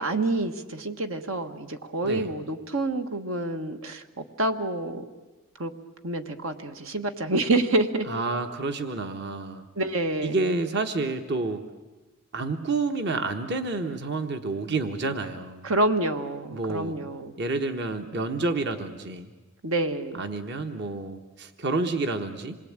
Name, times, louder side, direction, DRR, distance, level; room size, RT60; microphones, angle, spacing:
voice 1, 0.0-5.0 5.6-5.7 6.0-8.1 9.8-10.5 15.6-17.3 19.6-20.2, right 2 dB, 80° right, 7 dB, 1.5 m, -27 dB
voice 2, 8.1-9.7 10.2-11.6 12.3-15.7 16.5-17.0 17.4-19.3 20.1-22.6, right 3 dB, 55° right, 7 dB, 1.3 m, -29 dB
27.0 x 21.5 x 8.9 m, 1.2 s
head